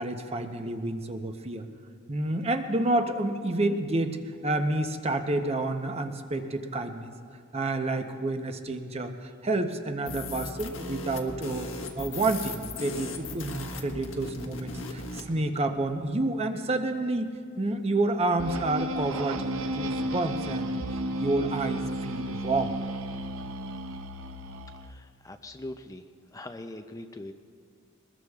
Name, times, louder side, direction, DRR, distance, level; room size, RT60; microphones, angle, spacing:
voice 1, 0.0-1.7 2.1-4.2 4.4-7.1 7.5-11.7 12.0-17.3 17.6-20.8 21.1-22.7, right 2 dB, 30° right, 6 dB, 0.8 m, -29 dB
sound 1, 10.0-15.3, left 2 dB, 70° left, 1.4 m, -38 dB
sound 2, 18.4-24.9, right 1 dB, 80° right, 0.7 m, -33 dB
voice 2, 24.7-26.0 26.3-27.3, left 1 dB, 15° left, 6 dB, 0.4 m, -42 dB
22.0 x 20.5 x 2.4 m, 2.2 s
head